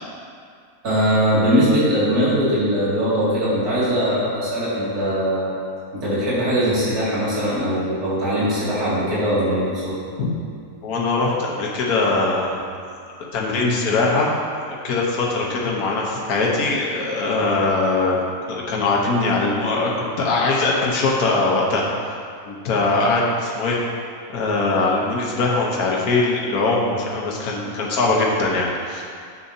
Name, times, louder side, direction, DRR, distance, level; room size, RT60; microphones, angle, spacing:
voice 1, 0.8-5.5 5.9-9.9, equal, 70° right, -10 dB, 2.9 m, -21 dB
voice 2, 10.8-12.6 13.3-14.3 14.7-18.2 18.5-21.8 22.4-23.8 24.3-29.1, left 3 dB, 70° left, -3 dB, 1.5 m, -21 dB
10.0 x 7.7 x 2.8 m, 2.2 s
omnidirectional pair, 1.7 m